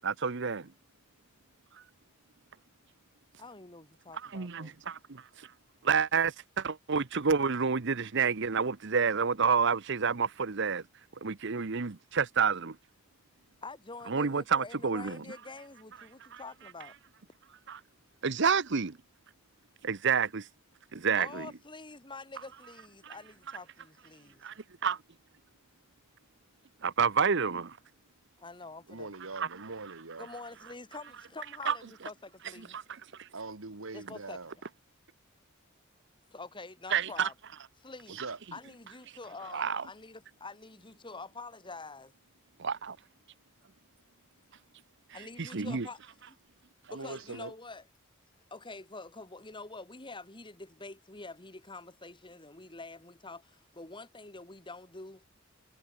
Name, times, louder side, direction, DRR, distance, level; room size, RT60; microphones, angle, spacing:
voice 1, 0.0-0.7 4.3-5.5 5.8-10.8 11.2-12.8 14.1-15.2 16.3-16.4 17.7-17.8 18.2-19.0 19.8-20.5 20.9-21.5 23.0-23.1 24.4-24.5 24.8-25.0 26.8-27.8 29.4-29.5 31.7-31.8 32.7-33.3 36.9-37.3 39.5-39.8 42.6-43.0 45.4-45.9, right 6 dB, 60° right, 0.9 m, -29 dB
voice 2, 3.4-4.8 13.6-16.9 21.1-24.4 28.4-29.1 30.2-32.8 33.9-34.4 36.3-37.3 37.8-38.2 38.5-42.1 45.1-46.0 46.3-46.4 46.9-47.9 48.5-55.3, left 3 dB, 25° left, 2.5 m, -46 dB
voice 3, 28.9-30.3 33.3-34.5 38.1-38.4 46.9-47.5, right 3 dB, 80° right, 1.7 m, -42 dB
head